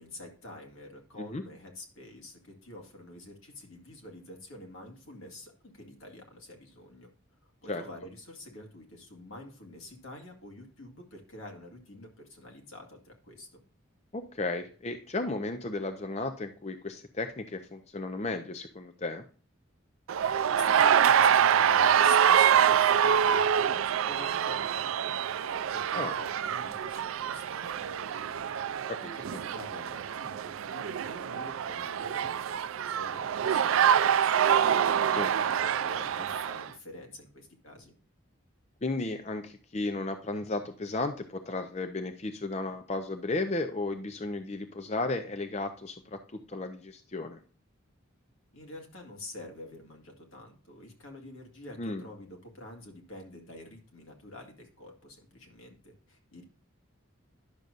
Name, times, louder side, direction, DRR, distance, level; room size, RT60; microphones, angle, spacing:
voice 1, 0.0-7.1 7.6-13.6 20.5-37.9 48.5-56.4, left 1 dB, 80° left, 2 dB, 2.0 m, -47 dB
voice 2, 14.1-19.2 25.9-26.2 28.9-29.2 35.1-35.3 38.8-47.4 51.8-52.0, left 2 dB, 30° left, 7 dB, 0.5 m, -34 dB
sound 1, 20.1-36.7, right 8 dB, 80° right, 0.4 m, -26 dB
10.5 x 6.6 x 2.5 m, 0.39 s
head